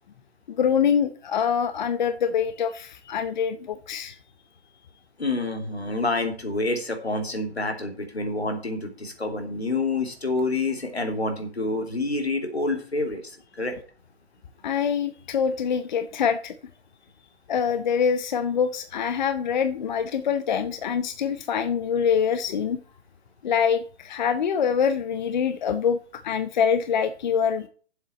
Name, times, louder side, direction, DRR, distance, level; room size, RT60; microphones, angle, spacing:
voice 1, 0.5-4.2 14.6-16.5 17.5-22.8 23.4-27.7, left 7 dB, 45° left, 11 dB, 0.8 m, -25 dB
voice 2, 5.2-13.8, left 2 dB, 80° left, 4 dB, 2.9 m, -28 dB
7.5 x 7.5 x 7.6 m, 0.41 s
figure-of-eight pair, 125°, 31 cm